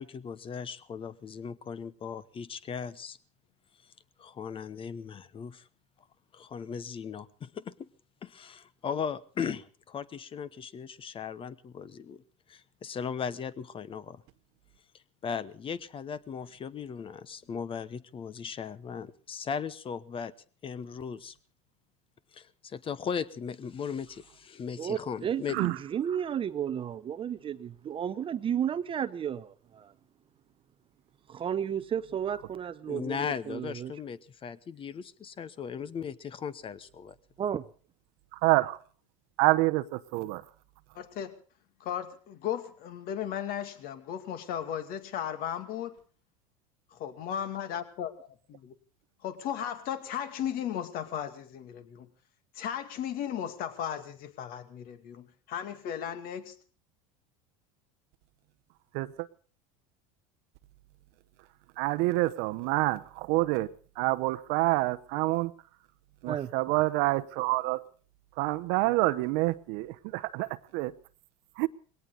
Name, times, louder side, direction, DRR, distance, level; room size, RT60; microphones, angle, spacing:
voice 1, 0.0-3.2 4.2-5.7 6.3-7.9 8.2-12.2 12.5-14.2 15.2-20.3 20.6-21.4 22.3-25.6 32.9-37.2, left 6 dB, 30° left, 1.0 m, -37 dB
voice 2, 24.8-29.9 31.3-33.9 37.4-37.6 66.3-66.5, right 9 dB, 30° right, 0.8 m, -33 dB
voice 3, 38.3-38.8 39.4-40.4 58.9-59.3 61.8-63.7 64.0-65.5 66.2-67.8 68.4-70.9 71.6-71.7, right 20 dB, 65° right, 0.9 m, -27 dB
voice 4, 40.9-41.4 41.8-46.0 46.9-48.1 48.5-48.6 49.2-52.1 52.5-56.6, left 9 dB, 55° left, 2.4 m, -35 dB
20.5 x 18.0 x 4.0 m
supercardioid pair, 110°, 18 cm